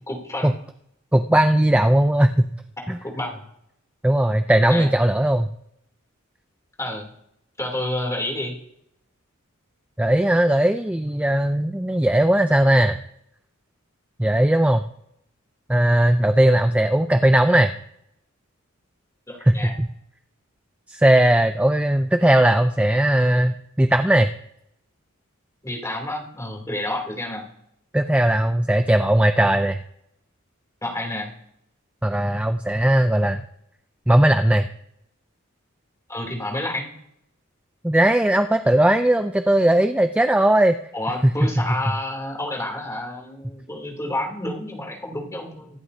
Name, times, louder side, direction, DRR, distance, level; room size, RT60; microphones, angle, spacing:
voice 1, 0.1-0.5 2.9-3.4 4.7-4.9 6.8-7.1 7.6-8.6 19.3-19.7 25.6-27.5 30.8-31.3 36.1-36.9 40.9-45.8, left 1 dB, 15° left, 0 dB, 3.1 m, -29 dB
voice 2, 1.1-2.5 2.9-3.0 4.0-5.5 10.0-13.0 14.2-14.8 15.7-17.7 19.4-19.9 20.9-24.3 27.9-29.8 32.0-33.4 34.1-34.7 37.8-40.8 41.6-41.7, right 1 dB, 5° right, 7 dB, 0.4 m, -18 dB
25.0 x 11.0 x 2.8 m, 0.75 s
head